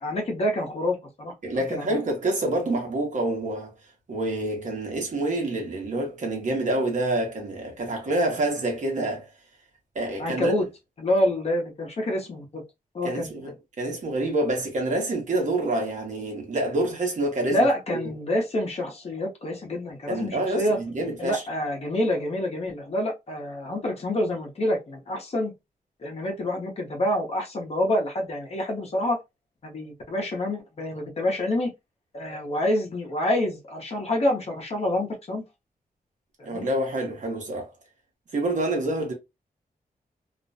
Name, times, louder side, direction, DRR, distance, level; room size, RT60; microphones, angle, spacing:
voice 1, 0.0-2.0 10.2-10.7 11.0-12.6 12.9-13.4 17.5-20.8 21.2-25.5 26.0-29.2 29.6-31.7 32.1-35.4 36.5-36.7, left 1 dB, 45° left, 0.7 m, -27 dB
voice 2, 1.4-3.7 4.1-9.3 9.9-10.5 13.0-13.5 13.8-18.0 20.1-21.4 36.4-37.7 38.3-39.1, right 1 dB, 55° right, 0.9 m, -27 dB
2.4 x 2.1 x 2.5 m
wide cardioid pair, 160°, 15 cm